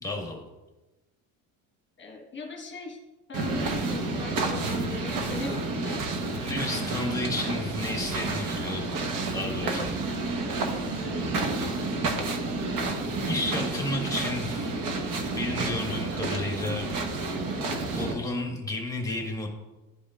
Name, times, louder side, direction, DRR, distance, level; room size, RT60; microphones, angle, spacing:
voice 1, 0.0-0.4 6.4-9.0 9.3-10.0 13.3-14.7 15.3-16.9 17.9-19.5, left 2 dB, 10° left, 1 dB, 1.5 m, -32 dB
voice 2, 2.0-3.0 3.3-6.0 6.7-6.9 9.6-9.9 10.9-11.2, left 4 dB, 30° left, 1 dB, 1.4 m, -39 dB
sound 1, 3.3-18.1, right 3 dB, 50° right, 1.2 m, -30 dB
12.0 x 5.0 x 2.5 m, 1.1 s
cardioid pair, 115°, 40 cm